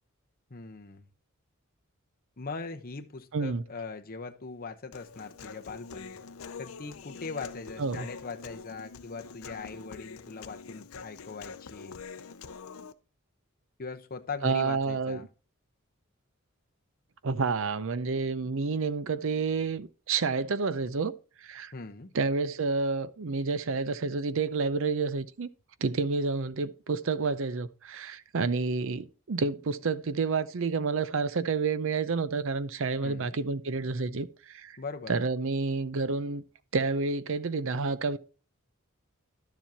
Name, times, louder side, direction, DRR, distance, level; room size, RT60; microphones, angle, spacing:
voice 1, 0.5-1.1 2.4-6.2 6.6-11.9 13.8-15.3 21.7-22.1 33.0-33.3 34.8-35.2, left 4 dB, 45° left, 0.9 m, -40 dB
voice 2, 3.3-3.6 7.8-8.1 14.4-15.2 17.2-21.1 21.4-21.7 22.1-25.5 25.8-34.8 35.1-36.4 36.7-38.2, right 4 dB, 70° right, 0.6 m, -29 dB
Human voice, 4.9-12.9, left 5 dB, 85° left, 0.6 m, -45 dB
12.0 x 7.2 x 2.8 m
head